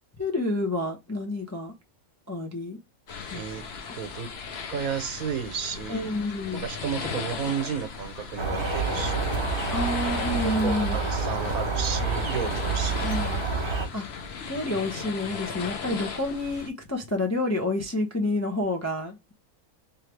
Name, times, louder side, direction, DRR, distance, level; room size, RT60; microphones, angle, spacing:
voice 1, 0.2-1.7 2.3-2.8 3.3-3.6 5.9-6.7 9.7-11.0 13.0-13.4 13.9-14.1 14.5-19.3, left 2 dB, 20° left, 0.4 m, -29 dB
sound 1, 3.1-16.7, left 5 dB, 55° left, 0.9 m, -36 dB
voice 2, 3.3-3.6 4.0-4.3 4.7-6.1 6.5-9.4 10.3-13.1, right 7 dB, 75° right, 1.3 m, -33 dB
sound 2, 8.4-13.9, right 4 dB, 40° right, 1.4 m, -28 dB
3.5 x 3.2 x 3.2 m
omnidirectional pair, 1.5 m